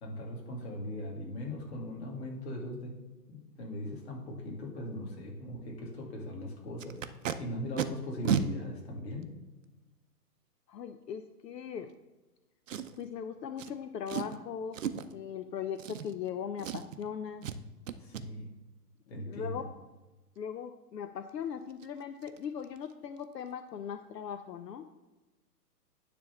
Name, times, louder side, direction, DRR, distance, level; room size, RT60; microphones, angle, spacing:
voice 1, 0.0-3.0 3.3-7.0 7.4-9.3 18.0-18.5 19.1-19.6, left 1 dB, 40° left, -1 dB, 2.4 m, -39 dB
Packing tape duct tape, 6.8-7.3 7.8-7.9 8.2-8.4 9.2-9.3 12.7-13.1 13.6-13.7 14.1-14.4 14.7-15.1 15.8-16.3 16.6-17.0 17.4-17.6 17.9-18.2 21.3-21.4 21.7-21.9 22.2-22.4 22.6-22.9 23.2-23.3, right 8 dB, 50° right, 0.6 m, -33 dB
voice 2, 10.7-11.9 13.0-14.8 15.1-17.4 19.2-19.7 20.4-24.9, left 8 dB, 75° left, 8 dB, 0.7 m, -39 dB
9.8 x 3.5 x 7.0 m, 1.1 s
hypercardioid pair, 160°, 49 cm